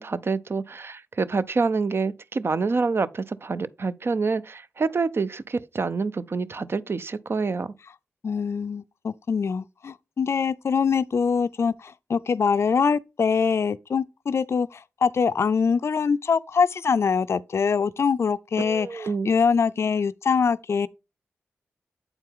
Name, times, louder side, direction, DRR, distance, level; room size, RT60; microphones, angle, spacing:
voice 1, 0.0-7.7 18.6-19.3, right 4 dB, 50° right, 0.5 m, -27 dB
voice 2, 8.2-20.9, left 6 dB, 60° left, 0.4 m, -24 dB
7.8 x 4.4 x 3.7 m
cardioid pair, 45°, 5 cm